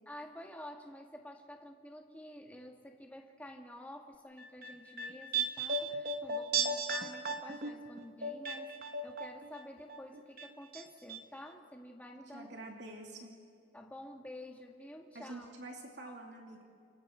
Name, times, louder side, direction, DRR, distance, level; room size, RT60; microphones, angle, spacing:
voice 1, 0.0-12.6 13.7-15.5 16.0-16.1, left 1 dB, 10° left, 1 dB, 1.8 m, -50 dB
sound 1, 4.4-9.6 9.9-10.8 11.1-11.2, right 3 dB, 50° right, 1.4 m, -36 dB
voice 2, 12.3-13.4 15.1-16.6, right 2 dB, 70° right, 0 dB, 2.7 m, -47 dB
29.5 x 27.0 x 4.5 m, 2.3 s
head